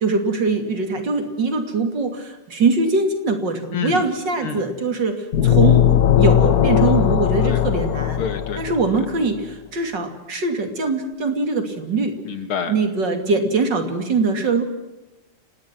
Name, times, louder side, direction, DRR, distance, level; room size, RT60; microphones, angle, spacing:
voice 1, 0.0-5.8 6.2-8.2 8.6-12.2 12.7-14.6, right 3 dB, 55° right, 6 dB, 3.4 m, -22 dB
sound 1, 5.3-9.0, left 10 dB, 55° left, 1.3 m, -17 dB
voice 2, 8.2-8.6 12.3-12.7, left 6 dB, 80° left, 9 dB, 2.8 m, -27 dB
29.5 x 18.5 x 6.1 m, 1.0 s
omnidirectional pair, 2.3 m